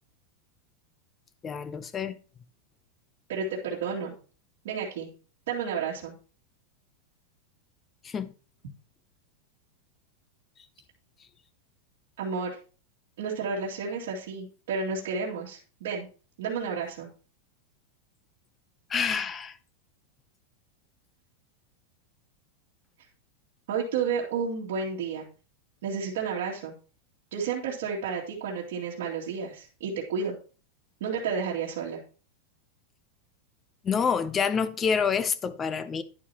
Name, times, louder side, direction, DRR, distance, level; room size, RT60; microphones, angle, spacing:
voice 1, 1.4-2.1 8.0-8.3 18.9-19.6 33.8-36.0, left 6 dB, 20° left, 0.7 m, -27 dB
voice 2, 3.3-4.1 4.6-5.1 5.5-6.1 12.2-12.6 13.2-16.1 16.4-17.1 23.7-25.2 25.8-26.8 27.3-30.4 31.0-32.0, right 5 dB, 70° right, 2.4 m, -31 dB
11.0 x 9.3 x 2.9 m
supercardioid pair, 160°, 0 cm